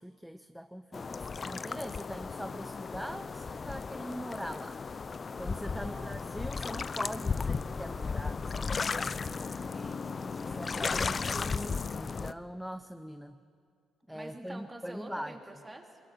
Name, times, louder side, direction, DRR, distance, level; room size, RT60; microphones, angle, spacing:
voice 1, 0.0-4.8 5.3-9.6 10.4-13.4 14.1-15.4, equal, ahead, 9 dB, 0.7 m, -42 dB
sound 1, 0.9-12.3, left 5 dB, 35° left, 0.6 m, -35 dB
voice 2, 5.6-6.5 9.5-11.3 14.1-16.0, right 1 dB, 20° right, 3 dB, 3.0 m, -49 dB
23.5 x 20.5 x 8.7 m, 2.3 s
cardioid pair, 90°, 0 cm